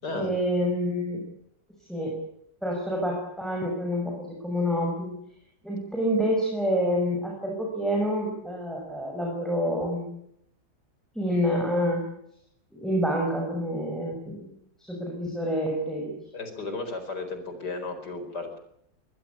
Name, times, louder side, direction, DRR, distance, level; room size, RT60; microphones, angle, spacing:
voice 1, 0.1-1.2 1.9-2.1 2.6-5.1 5.6-10.1 11.1-12.0 12.7-14.5 14.8-16.2, equal, ahead, -1 dB, 6.3 m, -27 dB
voice 2, 16.3-18.6, left 3 dB, 65° left, 8 dB, 5.3 m, -34 dB
23.0 x 20.5 x 8.6 m, 0.73 s
omnidirectional pair, 1.9 m